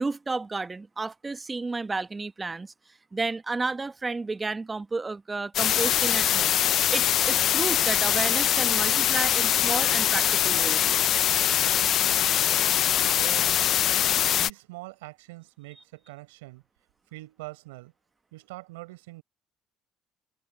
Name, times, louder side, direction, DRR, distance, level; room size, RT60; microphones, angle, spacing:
voice 1, 0.0-2.7 3.1-6.6 6.9-10.9, right 3 dB, 25° right, 1.3 m, -32 dB
sound 1, 5.5-14.5, left 11 dB, 60° left, 0.5 m, -23 dB
voice 2, 13.0-13.6 14.2-16.6 17.1-17.9 18.3-19.2, right 22 dB, 90° right, 4.3 m, -43 dB
open air
supercardioid pair, 70°, 0 cm